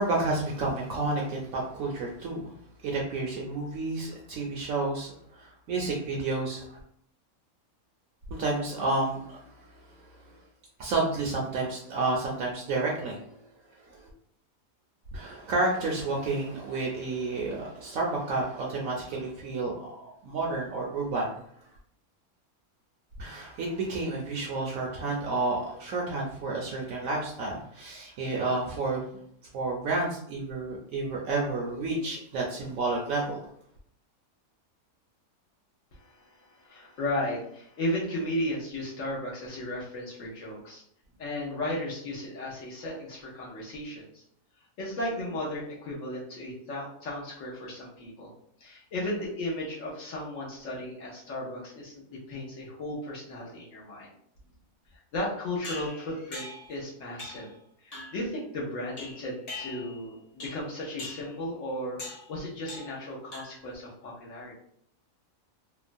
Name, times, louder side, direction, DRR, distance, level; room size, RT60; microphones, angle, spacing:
voice 1, 0.0-2.5 2.8-6.8 8.3-9.6 9.9-10.0 10.8-13.4 13.9-14.1 15.1-21.4 23.2-29.0 29.5-33.4, right 3 dB, 70° right, -2 dB, 0.9 m, -30 dB
voice 2, 35.9-40.8 41.2-44.2 44.8-48.3 48.6-54.1 55.1-57.5 57.8-64.5, left 1 dB, 65° left, -4 dB, 1.0 m, -35 dB
sound 1, 55.6-56.8 57.2-57.5 57.9-58.3 59.0-60.0 60.4-60.7 61.0-61.3 62.0-62.3 62.7-63.0 63.3-63.7, left 2 dB, 40° left, 0.5 m, -42 dB
2.9 x 2.1 x 2.5 m, 0.67 s
omnidirectional pair, 1.6 m